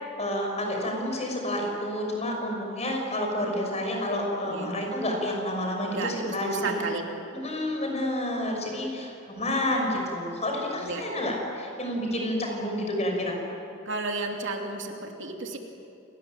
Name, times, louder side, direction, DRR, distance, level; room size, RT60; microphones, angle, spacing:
voice 1, 0.2-6.8 7.4-13.4, left 1 dB, 30° left, 1 dB, 6.0 m, -29 dB
voice 2, 5.9-7.0 10.8-11.0 13.8-15.6, right 3 dB, 60° right, 2 dB, 2.9 m, -32 dB
29.5 x 19.5 x 9.1 m, 2.7 s
head